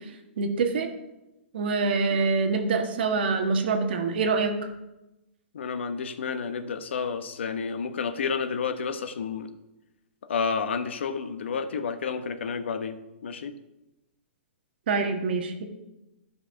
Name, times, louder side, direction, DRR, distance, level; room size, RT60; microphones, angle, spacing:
voice 1, 0.4-0.9 1.5-4.5 14.9-15.6, right 4 dB, 55° right, 5 dB, 1.5 m, -25 dB
voice 2, 5.5-9.5 10.3-13.0 13.2-13.5, left 5 dB, 70° left, 9 dB, 1.1 m, -30 dB
13.0 x 5.7 x 5.8 m, 0.96 s
hypercardioid pair, 170°, 6 cm